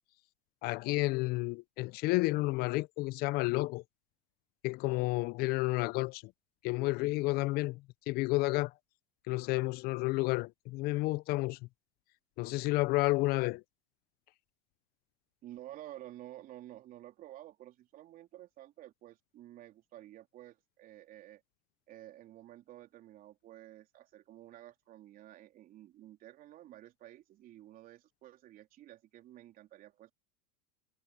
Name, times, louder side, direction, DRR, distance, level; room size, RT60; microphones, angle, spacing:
voice 1, 0.6-3.8 4.6-6.2 6.6-7.8 8.1-8.7 9.3-11.6 12.4-13.6, left 21 dB, 55° left, 0.6 m, -31 dB
voice 2, 15.4-21.4 21.9-30.1, right 14 dB, 45° right, 3.6 m, -52 dB
hypercardioid pair, 100°, 20 cm